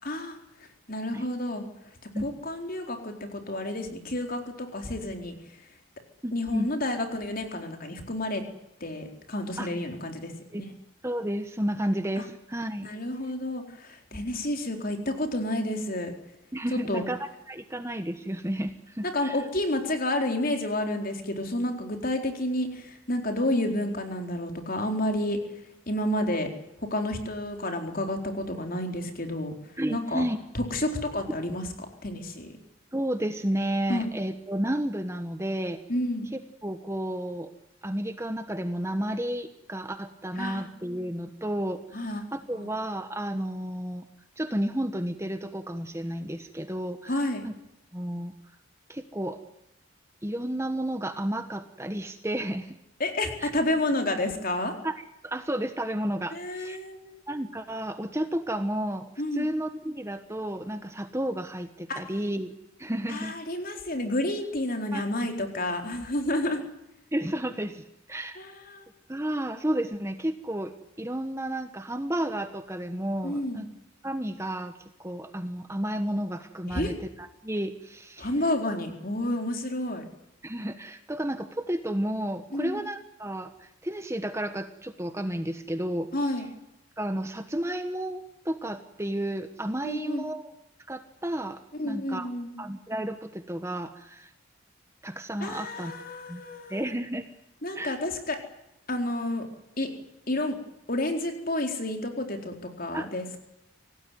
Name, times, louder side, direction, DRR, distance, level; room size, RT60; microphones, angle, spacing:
voice 1, 0.0-1.6 2.2-5.6 6.3-8.4 8.8-10.7 12.2-12.3 12.8-16.1 16.7-17.0 19.0-26.5 26.8-30.2 30.5-31.7 32.0-32.6 33.9-34.1 35.9-36.3 40.3-40.7 41.9-42.2 42.5-42.8 47.1-47.4 53.0-54.8 56.3-57.2 59.2-59.5 61.9-62.0 63.1-66.6 68.4-68.9 73.2-73.6 76.7-76.9 78.2-80.0 82.5-82.8 86.1-86.5 89.8-90.3 91.8-92.6 95.4-96.9 97.6-98.4 98.9-99.5 99.8-99.9 100.3-100.6 100.9-103.4, left 1 dB, 45° left, 4 dB, 4.2 m, -30 dB
voice 2, 6.2-6.7 9.6-9.7 10.5-10.6 11.0-12.9 16.5-19.4 29.8-30.4 32.9-35.8 36.6-37.5 37.8-44.1 44.4-47.2 47.4-47.5 47.9-48.3 48.9-49.4 50.2-52.8 53.4-53.5 54.8-54.9 55.2-56.8 57.3-59.1 59.3-62.5 62.8-63.3 64.9-65.0 67.1-68.4 69.1-73.7 74.0-74.7 75.0-78.3 80.4-86.1 87.0-90.5 90.9-92.3 92.6-94.3 95.0-95.9 96.3-96.4 96.7-97.2 97.7-98.0 102.9-103.0, right 1 dB, 15° right, 8 dB, 1.2 m, -32 dB
26.0 x 18.0 x 9.4 m, 0.88 s
head